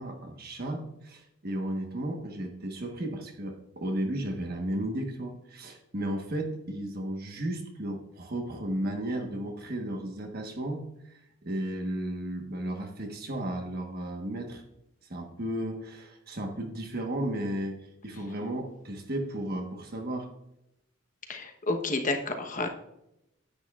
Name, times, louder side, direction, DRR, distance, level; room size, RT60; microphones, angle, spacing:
voice 1, 0.0-14.6 15.1-17.8 18.0-20.3, right 1 dB, 45° right, 3 dB, 1.3 m, -34 dB
voice 2, 21.3-22.7, left 2 dB, 40° left, 5 dB, 1.0 m, -30 dB
10.0 x 8.9 x 2.4 m, 0.84 s
head